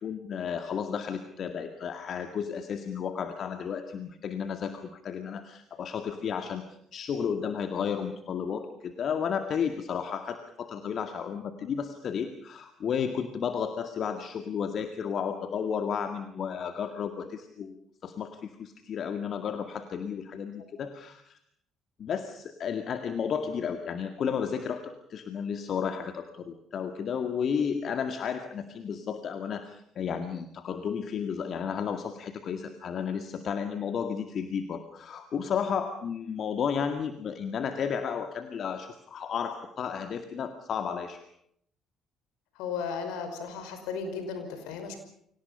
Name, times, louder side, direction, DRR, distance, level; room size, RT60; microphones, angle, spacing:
voice 1, 0.0-6.6 6.9-17.8 18.0-21.4 22.0-41.3, left 7 dB, 55° left, 7 dB, 2.0 m, -33 dB
voice 2, 42.6-45.0, left 5 dB, 70° left, 7 dB, 5.4 m, -35 dB
30.0 x 25.0 x 5.6 m, 0.70 s
hypercardioid pair, 50°, 0 cm